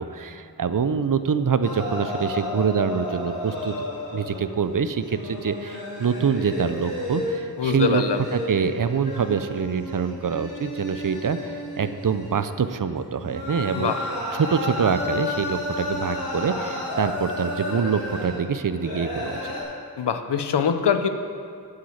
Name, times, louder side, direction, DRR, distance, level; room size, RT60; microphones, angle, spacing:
voice 1, 0.0-3.7 4.1-8.0 8.3-13.9 14.4-19.5, right 6 dB, 55° right, 11 dB, 0.7 m, -25 dB
sound 1, 1.6-4.7 5.0-19.6, left 1 dB, 65° left, 3.5 m, -32 dB
voice 2, 7.6-8.2 13.7-14.0 20.0-21.1, left 7 dB, 85° left, 8 dB, 0.8 m, -23 dB
8.4 x 7.9 x 8.5 m, 2.4 s
cardioid pair, 50°, 40 cm